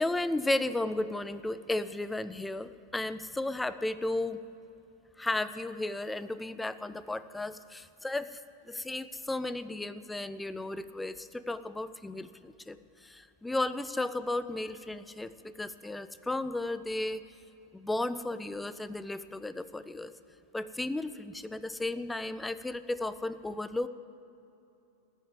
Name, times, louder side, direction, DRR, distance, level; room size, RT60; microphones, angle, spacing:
voice 1, 0.0-4.4 5.2-8.4 8.7-17.2 17.7-20.1 20.5-23.9, left 2 dB, 5° left, 13 dB, 0.5 m, -34 dB
14.5 x 10.0 x 9.0 m, 2.8 s
figure-of-eight pair, 90°, 0 cm